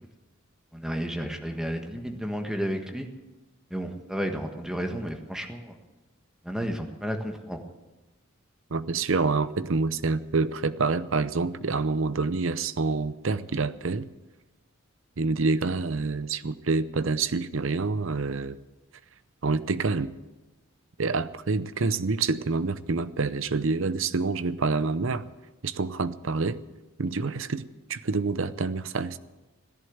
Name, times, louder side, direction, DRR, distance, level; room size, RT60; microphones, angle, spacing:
voice 1, 0.7-3.1 3.7-5.8 6.4-7.6, equal, 5° right, 4 dB, 1.5 m, -32 dB
voice 2, 8.7-14.1 15.2-18.6 19.4-20.1 21.0-25.3 25.6-26.6 27.0-29.2, right 4 dB, 65° right, 13 dB, 0.7 m, -27 dB
16.5 x 11.0 x 8.0 m, 1.1 s
head